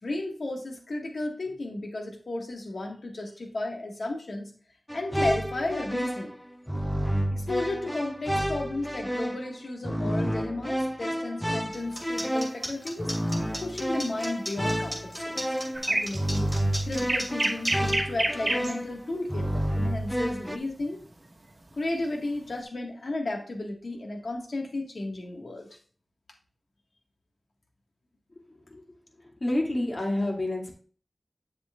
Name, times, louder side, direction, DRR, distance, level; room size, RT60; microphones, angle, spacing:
voice 1, 0.0-4.5 4.9-6.3 7.3-13.2 13.6-16.6 16.8-21.0 21.7-25.7, left 2 dB, 75° left, 2 dB, 1.7 m, -34 dB
sound 1, 4.9-20.6, equal, ahead, 0.6 m, -30 dB
sound 2, 11.7-17.9, equal, 20° left, 2.7 m, -36 dB
sound 3, 15.7-18.7 20.8-21.1, right 2 dB, 50° right, 1.2 m, -28 dB
voice 2, 29.4-30.7, left 1 dB, 50° left, 0 dB, 2.3 m, -28 dB
8.1 x 7.2 x 2.4 m, 0.43 s
wide cardioid pair, 50°, 0 cm